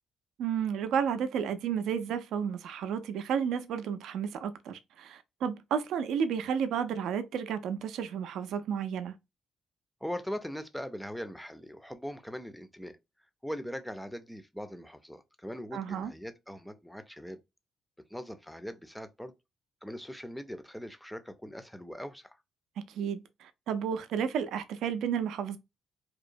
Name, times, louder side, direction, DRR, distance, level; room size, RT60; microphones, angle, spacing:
voice 1, 0.4-9.2 15.7-16.1 22.9-25.6, right 7 dB, 80° right, 0.4 m, -32 dB
voice 2, 10.0-13.0 13.4-17.4 18.1-19.3 19.8-22.4, equal, 5° left, 0.4 m, -41 dB
2.8 x 2.1 x 2.5 m
cardioid pair, 90°, 0 cm